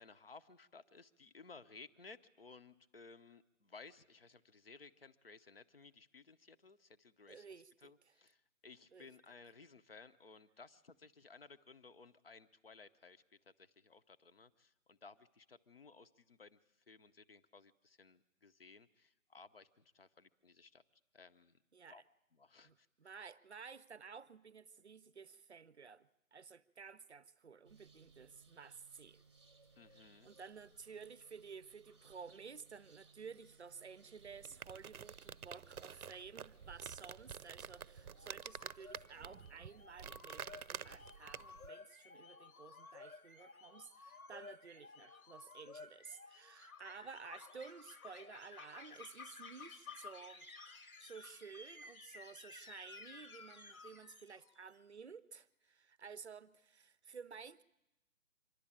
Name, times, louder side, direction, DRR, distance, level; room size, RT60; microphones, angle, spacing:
voice 1, 0.0-7.5 7.8-16.6 16.9-20.8 21.1-21.6 21.9-22.0 22.3-22.9 29.7-30.3, left 4 dB, 45° left, 0.8 m, -59 dB
voice 2, 7.3-7.9 8.9-9.1 21.7-22.0 22.6-29.2 29.9-57.6, right 5 dB, 50° right, 0.6 m, -54 dB
sound 1, 27.6-38.3, right 4 dB, 20° right, 0.8 m, -65 dB
sound 2, 34.2-41.7, right 7 dB, 90° right, 0.7 m, -49 dB
sound 3, 38.1-54.7, left 4 dB, 80° left, 1.4 m, -55 dB
25.5 x 11.5 x 8.6 m
hypercardioid pair, 175°, 42 cm